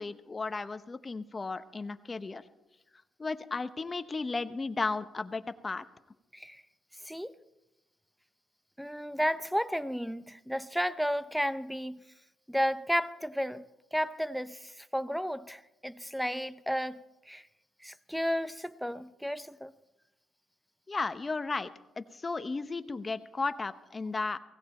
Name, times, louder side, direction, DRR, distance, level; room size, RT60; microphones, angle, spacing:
voice 1, 0.0-2.4 3.2-5.8 20.9-21.7 22.0-24.4, left 3 dB, 25° left, 0.8 m, -34 dB
voice 2, 7.0-7.3 8.8-12.0 12.5-13.6 13.9-17.5 17.8-19.7, equal, ahead, 0.6 m, -33 dB
16.5 x 16.0 x 4.3 m
cardioid pair, 90°, 0 cm